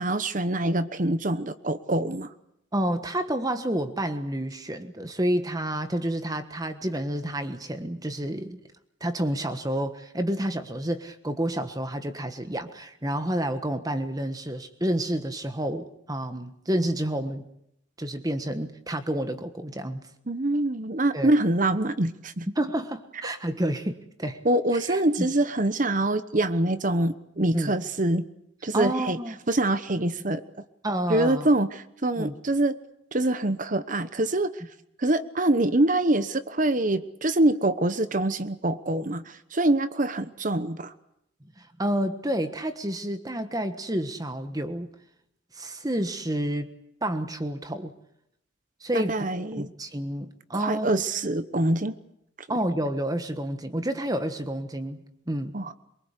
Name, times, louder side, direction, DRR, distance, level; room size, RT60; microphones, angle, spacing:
voice 1, 0.0-2.3 20.3-22.5 24.4-28.3 28.6-29.2 29.5-30.4 31.1-32.7 33.1-34.6 35.0-40.9 48.9-49.7 50.5-52.0 55.5-55.7, right 1 dB, 40° right, 12 dB, 1.0 m, -25 dB
voice 2, 2.7-8.6 9.0-17.4 18.0-20.0 21.1-21.3 22.5-24.4 24.9-25.3 27.5-27.7 28.7-29.4 30.8-31.5 32.2-32.3 41.6-44.9 45.5-46.7 47.0-47.9 48.8-49.2 49.6-51.0 52.5-55.6, right 1 dB, 20° right, 8 dB, 1.4 m, -29 dB
24.0 x 23.0 x 8.2 m, 0.76 s
head